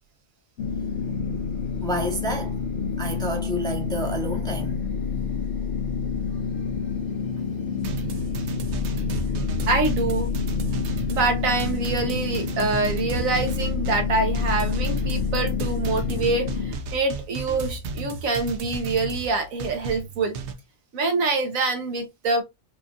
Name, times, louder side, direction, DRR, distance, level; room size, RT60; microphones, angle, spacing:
sound 1, 0.6-16.8, left 6 dB, 60° left, 1.3 m, -28 dB
voice 1, 1.8-2.6 3.0-4.8, right 1 dB, 5° left, 0.7 m, -29 dB
sound 2, 7.8-20.5, right 4 dB, 65° right, 0.9 m, -34 dB
voice 2, 9.7-10.4 11.1-20.3 20.9-22.4, right 3 dB, 80° right, 1.3 m, -25 dB
4.8 x 2.4 x 2.7 m
omnidirectional pair, 1.4 m